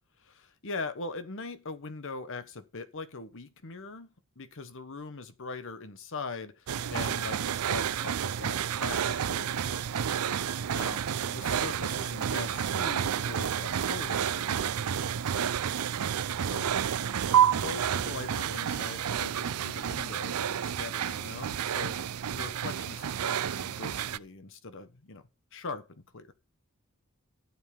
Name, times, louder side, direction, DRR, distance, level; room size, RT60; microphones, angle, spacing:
voice 1, 0.2-9.9 10.7-15.6 16.4-16.7 17.5-22.0 22.3-25.2 25.5-26.3, left 3 dB, 60° left, 1.2 m, -41 dB
sound 1, 6.7-24.2, right 9 dB, 80° right, 0.5 m, -30 dB
12.0 x 7.3 x 5.3 m
head